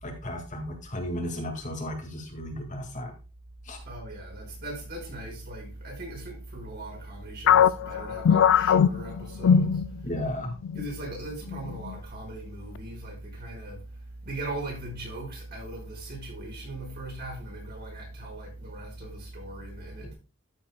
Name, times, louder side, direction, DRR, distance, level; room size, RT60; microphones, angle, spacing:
voice 1, 0.0-3.1 3.6-3.8 10.0-10.6 20.0-20.1, left 1 dB, 35° left, 2.0 m, -34 dB
voice 2, 3.9-10.1 10.7-20.1, right 1 dB, 45° right, 5.3 m, -39 dB
sound 1, 7.5-10.3 10.6-10.8 11.5-11.9, left 8 dB, 55° left, 0.3 m, -21 dB
13.5 x 7.4 x 2.2 m
head